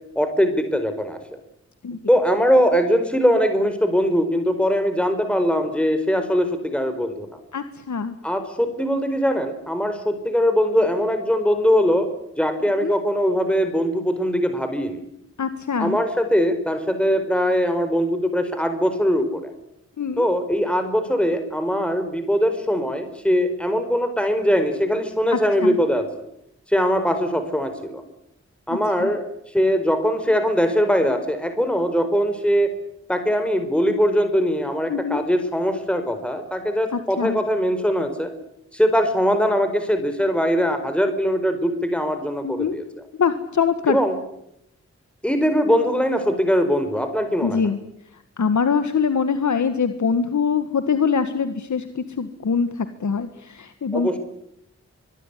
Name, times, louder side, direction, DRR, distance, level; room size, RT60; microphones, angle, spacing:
voice 1, 0.1-1.2 2.1-7.3 8.2-12.1 12.4-15.0 15.8-19.5 20.2-26.1 26.7-28.0 28.7-29.2 29.5-32.7 33.1-38.3 38.7-42.8 43.9-44.1 45.2-47.6 53.9-54.2, equal, 5° left, 7 dB, 4.8 m, -21 dB
voice 2, 7.5-8.2 12.8-12.9 15.4-16.0 20.0-20.3 25.3-25.8 28.7-29.1 34.9-35.2 36.9-37.4 42.4-42.8 43.2-44.0 47.4-47.8 48.4-54.2, left 6 dB, 80° left, 9 dB, 1.7 m, -23 dB
24.0 x 23.0 x 10.0 m, 0.79 s
wide cardioid pair, 70°, 29 cm